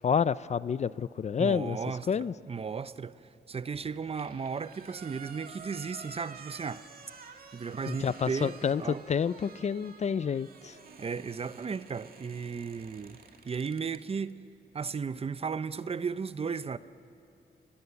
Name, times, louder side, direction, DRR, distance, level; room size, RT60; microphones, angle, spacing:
voice 1, 0.0-1.8 2.1-2.3 7.9-10.8, left 7 dB, 45° left, 0.4 m, -29 dB
voice 2, 1.4-3.2 3.5-6.8 7.5-9.0 11.0-13.2 13.4-14.4 14.7-16.8, right 5 dB, 35° right, 0.6 m, -35 dB
sound 1, 3.7-14.0, right 5 dB, 65° right, 2.2 m, -50 dB
28.0 x 20.5 x 7.0 m
wide cardioid pair, 110°, 16 cm